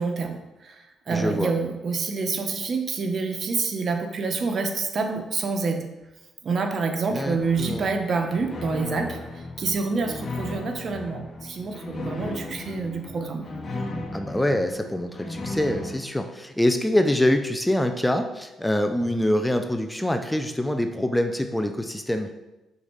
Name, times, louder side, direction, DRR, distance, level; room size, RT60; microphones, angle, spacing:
voice 1, 0.0-5.9 6.4-13.5, right 4 dB, 50° right, 5 dB, 0.9 m, -27 dB
voice 2, 1.1-1.5 7.1-7.9 14.1-22.3, left 1 dB, 5° left, 6 dB, 0.5 m, -25 dB
sound 1, 7.2-16.0, left 2 dB, 45° left, 1.2 m, -36 dB
5.0 x 4.1 x 5.5 m, 1.0 s
cardioid pair, 90°, 0 cm